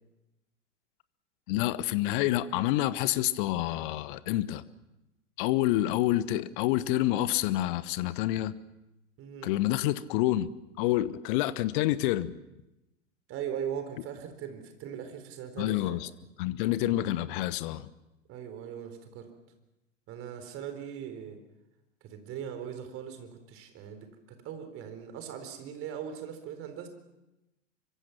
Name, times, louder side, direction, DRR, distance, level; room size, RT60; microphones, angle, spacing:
voice 1, 1.5-4.6 5.4-8.5 9.4-10.5 10.8-12.3 15.6-16.1 16.4-17.9, left 15 dB, 45° left, 1.1 m, -28 dB
voice 2, 9.2-9.5 13.3-16.0 18.3-19.3 20.1-21.4 22.0-26.9, right 8 dB, 35° right, 4.1 m, -40 dB
25.0 x 24.0 x 6.0 m
figure-of-eight pair, 95°, 38 cm